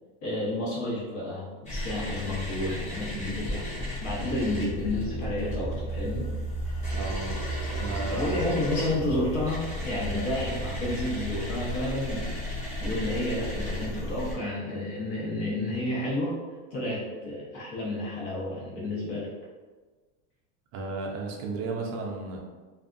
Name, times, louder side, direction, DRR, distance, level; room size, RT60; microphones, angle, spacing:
voice 1, 0.2-3.6 4.0-6.3 8.1-12.4 12.8-16.3 16.7-19.3, left 1 dB, 60° left, -5 dB, 1.2 m, -31 dB
sound 1, 1.7-14.3, equal, 20° left, 1.0 m, -33 dB
voice 2, 6.9-7.3 7.7-8.5 20.7-22.4, right 3 dB, 45° right, 0 dB, 0.5 m, -34 dB
2.6 x 2.3 x 2.5 m, 1.3 s
supercardioid pair, 130°, 38 cm